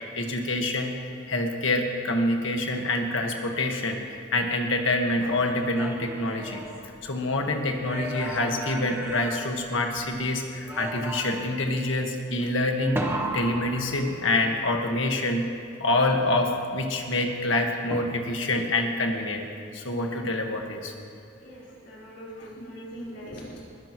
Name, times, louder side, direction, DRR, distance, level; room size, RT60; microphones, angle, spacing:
voice 1, 0.1-0.9 1.3-6.6 7.0-15.5 15.8-19.4 19.7-20.9, left 2 dB, 75° left, 2 dB, 1.6 m, -26 dB
sound 1, 5.4-7.3 7.8-10.2 10.7-11.6 13.0-14.6 17.9-18.6, right 1 dB, 10° right, 1.1 m, -35 dB
voice 2, 21.4-23.6, equal, 55° left, -7 dB, 4.2 m, -41 dB
20.5 x 16.5 x 3.1 m, 2.6 s
head